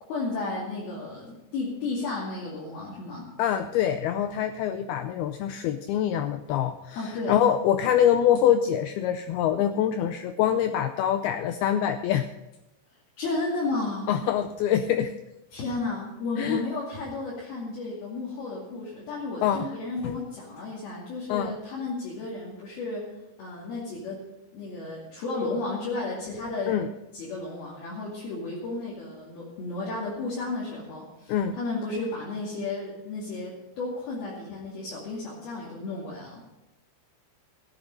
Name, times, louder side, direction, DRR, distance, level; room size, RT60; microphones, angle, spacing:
voice 1, 0.1-3.3 7.0-7.3 13.2-14.1 15.5-23.1 23.4-24.2 24.5-26.7 27.1-36.4, left 3 dB, 60° left, -6 dB, 4.1 m, -33 dB
voice 2, 3.4-12.3 14.1-15.1 16.4-16.6 19.4-19.7 20.0-20.1 21.3-21.6 26.7-26.9 31.3-31.6, left 10 dB, 90° left, 9 dB, 2.2 m, -25 dB
15.5 x 8.9 x 5.4 m, 0.97 s
omnidirectional pair, 5.1 m